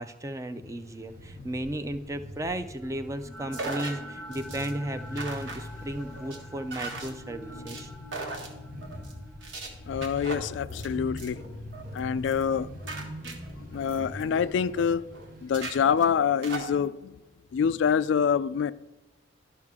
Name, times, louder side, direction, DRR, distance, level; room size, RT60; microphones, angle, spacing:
voice 1, 0.0-7.9, right 1 dB, 15° right, 0.4 m, -35 dB
sound 1, 0.6-16.1, equal, 50° right, 1.0 m, -44 dB
sound 2, 2.8-13.0, left 1 dB, ahead, 1.0 m, -47 dB
sound 3, 3.5-3.9 4.3-4.7 5.2-5.6 6.0-6.4 6.7-7.1 7.4-7.8 8.1-8.5 8.8-9.1 9.4-9.7 10.0-10.9 11.2-11.5 11.7-12.0 12.2-12.5 12.8-14.8 15.1-15.3 15.5-16.7, right 3 dB, 80° right, 1.6 m, -38 dB
voice 2, 9.9-11.4 11.9-12.7 13.0-13.1 13.6-15.1 15.4-17.1 17.5-18.7, left 7 dB, 70° left, 0.3 m, -26 dB
12.0 x 5.7 x 3.6 m
head